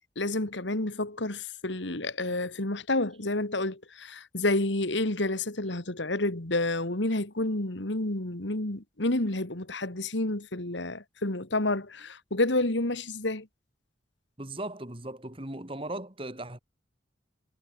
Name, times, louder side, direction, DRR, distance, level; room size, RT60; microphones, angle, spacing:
voice 1, 0.2-13.5, left 2 dB, 75° left, 2.4 m, -29 dB
voice 2, 14.4-16.6, right 1 dB, 30° right, 2.5 m, -37 dB
head